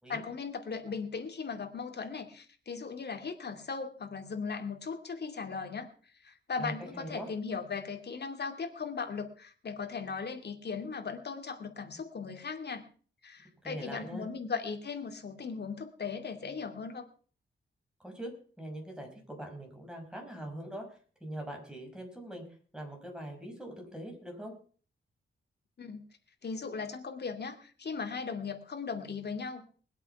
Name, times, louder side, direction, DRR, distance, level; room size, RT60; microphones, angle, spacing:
voice 1, 0.1-5.9 6.2-12.8 13.2-17.1 25.8-26.0 26.4-29.7, left 5 dB, 55° left, 5 dB, 2.6 m, -38 dB
voice 2, 6.6-7.3 13.6-14.3 18.0-18.3 18.6-20.8 21.2-22.4 22.7-24.5, right 1 dB, 5° right, 2 dB, 5.9 m, -42 dB
21.0 x 8.3 x 5.8 m, 0.43 s
wide cardioid pair, 95°, 21 cm